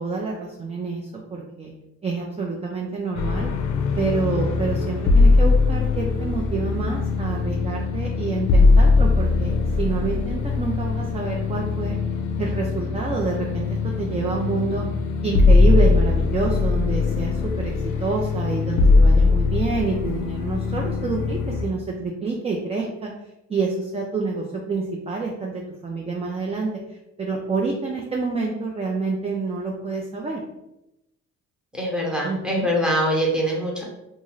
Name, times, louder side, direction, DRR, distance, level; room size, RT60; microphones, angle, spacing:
voice 1, 0.0-1.7 2.0-3.5 4.0-12.0 12.4-13.7 14.0-14.8 15.2-17.7 18.0-23.1 23.5-26.7 27.2-30.4 32.2-32.7, right 4 dB, 20° right, -1 dB, 0.4 m, -27 dB
sound 1, 3.2-21.7, left 3 dB, 75° left, 0.5 m, -20 dB
voice 2, 31.7-33.8, equal, 5° right, -2 dB, 0.9 m, -23 dB
2.5 x 2.4 x 3.0 m, 0.89 s
cardioid pair, 90°, 30 cm